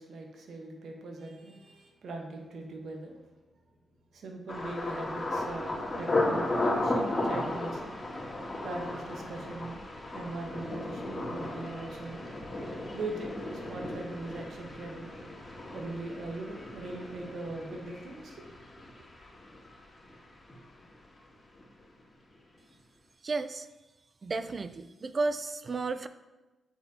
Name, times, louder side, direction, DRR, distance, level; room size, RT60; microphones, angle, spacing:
voice 1, 0.0-3.2 4.1-7.9 8.6-9.8 10.1-12.2 12.9-15.1 15.7-18.6 19.2-19.3, right 2 dB, 70° right, 2 dB, 1.0 m, -40 dB
Thunder, 4.5-20.2 20.5-21.1 21.5-21.8, left 2 dB, 30° left, 2.0 m, -35 dB
voice 2, 23.2-23.7 24.2-26.1, right 3 dB, 45° right, 12 dB, 0.4 m, -32 dB
8.8 x 4.2 x 2.7 m, 1.1 s
supercardioid pair, 50°, 0 cm